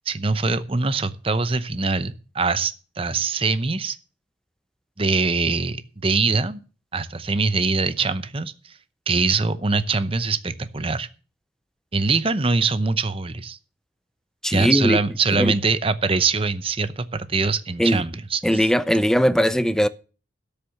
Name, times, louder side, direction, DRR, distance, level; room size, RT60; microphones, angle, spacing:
voice 1, 0.1-4.0 5.0-6.6 6.9-8.5 9.1-11.1 11.9-13.6 14.5-18.7, right 4 dB, 30° right, 0.8 m, -23 dB
voice 2, 14.4-15.0 15.3-15.5 17.8-18.0 18.4-19.9, equal, 5° left, 0.5 m, -19 dB
12.5 x 6.8 x 7.0 m
head